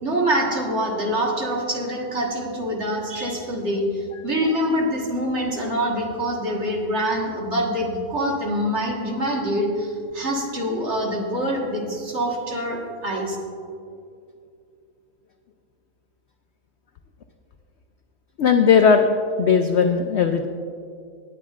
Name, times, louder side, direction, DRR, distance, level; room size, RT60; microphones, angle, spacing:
voice 1, 0.0-13.4, equal, 45° right, -1 dB, 1.8 m, -25 dB
voice 2, 18.4-19.1 19.4-20.5, left 6 dB, 75° left, 6 dB, 0.6 m, -17 dB
19.0 x 9.3 x 2.5 m, 2.4 s
omnidirectional pair, 1.8 m